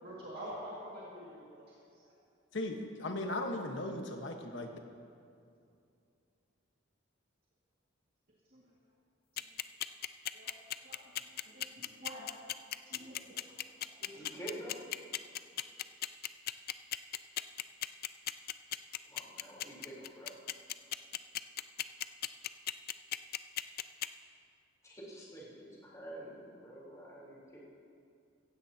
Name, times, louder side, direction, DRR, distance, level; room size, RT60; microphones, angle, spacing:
voice 1, 0.0-2.1 8.5-8.7 9.3-9.5 10.3-10.6 10.8-11.0 11.3-12.3 12.9-13.4 14.0-14.3, equal, 55° right, -6 dB, 2.1 m, -48 dB
voice 2, 2.5-4.8, left 1 dB, 70° left, 3 dB, 1.3 m, -37 dB
sound 1, 9.4-24.1, left 12 dB, 50° left, 0.4 m, -36 dB
voice 3, 14.1-14.8 19.1-20.3 24.8-27.6, right 1 dB, 15° left, -6 dB, 3.7 m, -48 dB
16.0 x 15.5 x 2.9 m, 2.5 s
head